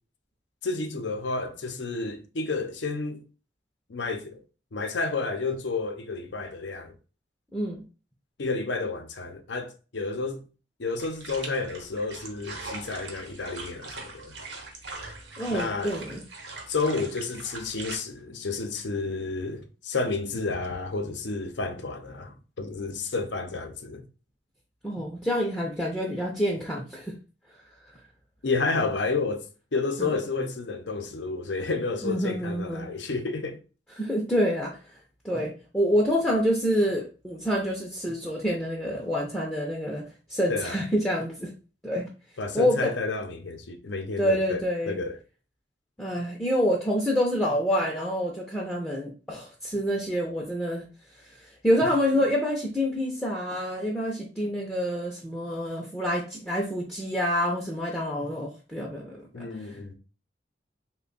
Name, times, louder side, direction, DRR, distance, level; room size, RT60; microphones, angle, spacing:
voice 1, 0.6-3.2 3.9-4.4 4.7-6.9 8.4-10.4 10.8-14.4 15.5-15.9 16.7-24.0 28.4-29.4 29.7-33.6 40.5-40.8 42.4-45.2 59.3-59.9, left 3 dB, 75° left, 0.6 m, -31 dB
voice 2, 7.5-7.8 15.4-16.2 24.8-27.1 30.0-30.2 32.0-32.9 34.0-34.8 35.2-40.0 40.3-41.5 41.8-42.1 42.5-42.9 44.2-45.0 46.0-50.9 51.6-59.8, equal, 5° left, 0.5 m, -27 dB
sound 1, 11.0-18.0, right 3 dB, 75° right, 0.9 m, -41 dB
3.3 x 2.2 x 3.8 m
head